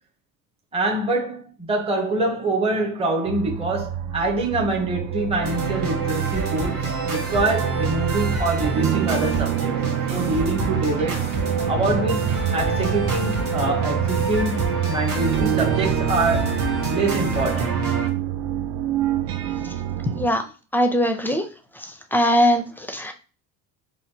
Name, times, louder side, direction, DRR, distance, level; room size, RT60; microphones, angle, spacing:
voice 1, 0.7-16.6 16.9-17.9, right 2 dB, 15° right, 0.8 m, -25 dB
sound 1, 3.3-20.3, right 10 dB, 55° right, 0.6 m, -27 dB
sound 2, 5.4-18.1, right 4 dB, 90° right, 1.2 m, -27 dB
voice 2, 20.7-21.5 21.8-23.1, equal, 5° left, 0.4 m, -21 dB
4.2 x 2.3 x 2.7 m
hypercardioid pair, 80°, 44 cm